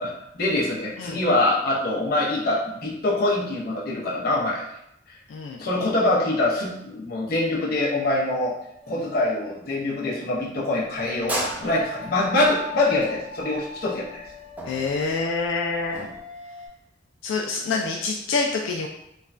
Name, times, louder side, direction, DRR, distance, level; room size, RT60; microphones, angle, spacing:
voice 1, 0.0-4.6 5.6-8.5 8.9-14.2, left 2 dB, 50° left, -4 dB, 0.6 m, -24 dB
voice 2, 5.3-5.6 14.7-16.1 17.2-18.9, left 4 dB, 85° left, 0 dB, 0.3 m, -26 dB
sound 1, 8.8-9.5 11.5-16.7, left 3 dB, 60° right, 0.9 m, -41 dB
sound 2, 10.9-16.2, right 1 dB, 10° right, 0.4 m, -35 dB
3.1 x 2.2 x 2.4 m, 0.79 s
head